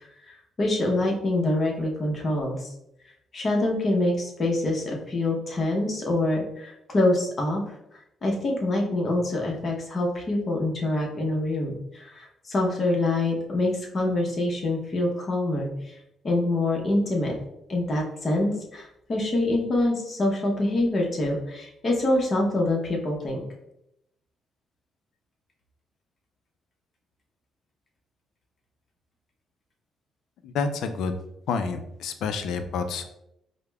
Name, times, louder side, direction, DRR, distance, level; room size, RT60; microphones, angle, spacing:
voice 1, 0.2-2.7 3.3-7.6 8.2-16.0 16.2-17.3 17.7-23.4, left 2 dB, 40° left, -1 dB, 0.7 m, -25 dB
voice 2, 30.4-31.2 31.5-33.1, left 5 dB, 80° left, 8 dB, 0.3 m, -28 dB
4.8 x 2.0 x 2.2 m, 0.81 s
cardioid pair, 90°, 0 cm